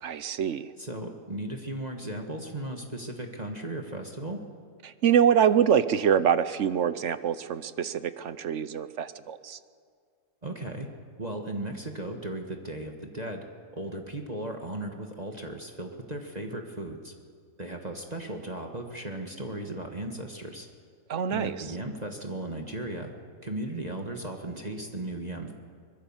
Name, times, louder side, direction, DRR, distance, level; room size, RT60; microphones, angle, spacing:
voice 1, 0.0-0.7 4.8-9.6 21.1-21.6, right 8 dB, 55° right, 14 dB, 0.9 m, -25 dB
voice 2, 0.8-4.4 10.4-10.9 11.2-13.5 13.7-17.1 17.6-20.7 21.3-23.1 23.4-25.5, right 1 dB, 25° right, 3 dB, 1.5 m, -36 dB
24.0 x 21.0 x 7.3 m, 2.1 s
omnidirectional pair, 1.7 m